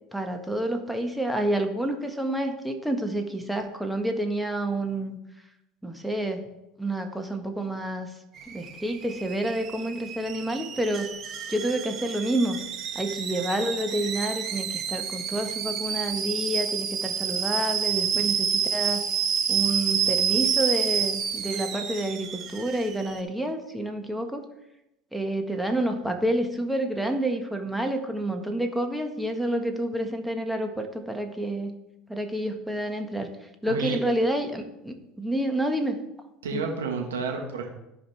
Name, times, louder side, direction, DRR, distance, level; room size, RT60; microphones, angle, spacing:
voice 1, 0.1-5.2 5.8-6.4 6.8-8.1 8.5-11.1 11.5-12.6 12.9-19.0 19.5-24.4 25.1-31.7 32.1-33.3 33.6-36.0 36.5-36.6, right 1 dB, 5° right, 4 dB, 1.4 m, -29 dB
Alarm / Boiling, 8.4-23.2, right 7 dB, 45° right, 1.4 m, -29 dB
voice 2, 33.7-34.0 36.4-37.7, right 4 dB, 85° right, 1 dB, 1.4 m, -30 dB
14.5 x 5.1 x 3.4 m, 0.89 s
hypercardioid pair, 75°, 0 cm